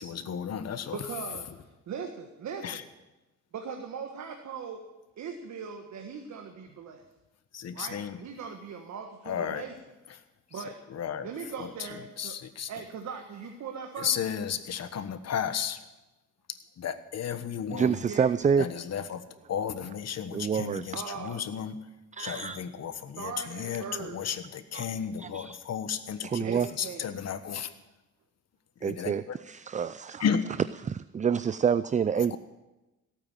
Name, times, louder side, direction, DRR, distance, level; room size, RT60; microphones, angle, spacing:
voice 1, 0.0-1.0 2.6-2.8 7.5-8.2 9.2-9.6 10.5-10.6 10.9-11.3 11.6-12.7 14.0-15.8 16.8-18.0 18.6-21.8 22.2-27.7 28.8-29.4 30.2-30.4 32.2-32.4, left 8 dB, 60° left, 11 dB, 1.4 m, -33 dB
voice 2, 0.9-2.8 3.5-4.9 5.2-7.0 7.7-9.8 10.5-10.8 11.2-12.3 12.7-14.2 18.0-18.3 20.9-21.4 23.2-24.2 26.4-27.2, right 6 dB, 65° right, 4 dB, 1.7 m, -40 dB
voice 3, 17.7-18.7 20.3-21.0 22.2-22.6 24.7-24.9 25.2-25.6 26.2-26.7 28.8-30.2 30.9-32.4, right 7 dB, 25° right, 15 dB, 0.4 m, -27 dB
17.5 x 9.0 x 9.1 m, 1.0 s
cardioid pair, 90°, 30 cm